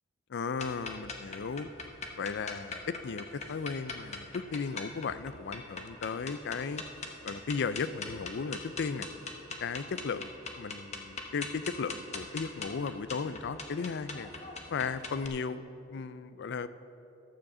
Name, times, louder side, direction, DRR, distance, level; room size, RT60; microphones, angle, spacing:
voice 1, 0.3-1.7 2.2-6.8 7.2-9.1 9.6-10.3 10.6-14.3 14.7-15.6 15.9-16.7, left 5 dB, 55° left, 14 dB, 0.4 m, -35 dB
sound 1, 0.6-15.3, left 3 dB, 30° left, 1.0 m, -42 dB
12.5 x 7.2 x 7.4 m, 2.8 s
head